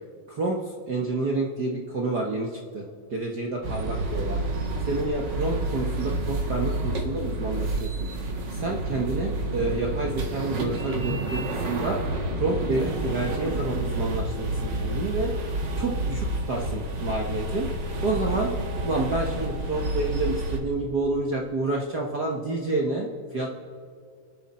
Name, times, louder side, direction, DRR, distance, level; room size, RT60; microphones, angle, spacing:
voice 1, 0.3-4.4 4.8-7.9 8.5-12.0 12.3-15.4 15.8-17.7 18.0-18.5 18.8-23.6, right 2 dB, 70° right, 0 dB, 0.9 m, -29 dB
sound 1, 3.6-20.6, right 1 dB, 45° right, 1.6 m, -29 dB
29.5 x 11.5 x 4.3 m, 2.4 s
omnidirectional pair, 3.8 m